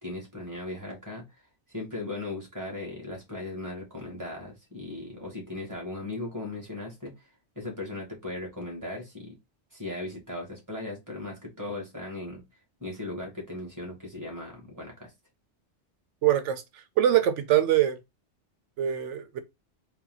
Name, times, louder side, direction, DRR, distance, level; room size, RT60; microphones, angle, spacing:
voice 1, 0.0-1.2 1.7-7.3 7.5-9.3 9.7-12.4 12.8-15.1, left 2 dB, 15° right, 1.7 m, -37 dB
voice 2, 16.2-16.6 17.0-18.0 18.8-19.4, right 11 dB, 85° right, 0.9 m, -23 dB
4.1 x 2.2 x 3.9 m
omnidirectional pair, 1.2 m